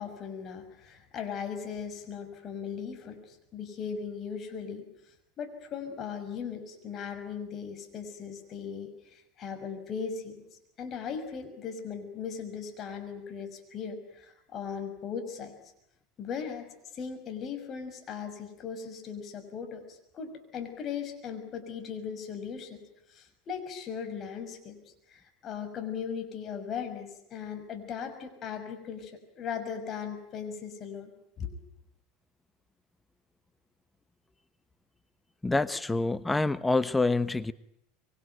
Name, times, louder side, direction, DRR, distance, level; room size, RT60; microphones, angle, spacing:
voice 1, 0.0-4.9 5.4-10.4 10.8-15.5 16.2-16.7 16.9-22.8 23.1-24.8 25.1-29.1 29.4-31.1 31.4-31.5, left 7 dB, 40° left, 6 dB, 6.1 m, -38 dB
voice 2, 35.4-37.5, left 3 dB, 10° left, 15 dB, 1.0 m, -26 dB
25.0 x 23.5 x 9.3 m, 0.77 s
hypercardioid pair, 80°, 0 cm